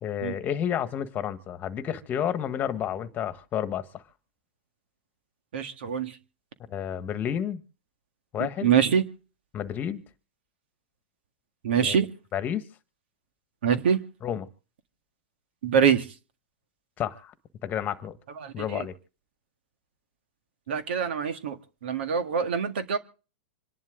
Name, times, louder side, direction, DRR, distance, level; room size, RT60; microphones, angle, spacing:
voice 1, 0.0-4.0 6.7-7.6 8.3-8.7 9.5-10.0 11.7-12.0 12.3-12.6 14.2-14.5 17.0-17.3 17.6-18.2 18.5-18.9, left 9 dB, 30° left, 1.4 m, -30 dB
voice 2, 5.5-6.2 8.4-9.0 11.6-12.1 13.6-14.0 15.6-16.1 18.4-18.9 20.7-23.0, right 7 dB, 75° right, 1.8 m, -25 dB
26.5 x 11.0 x 3.7 m
hypercardioid pair, 120°, 6 cm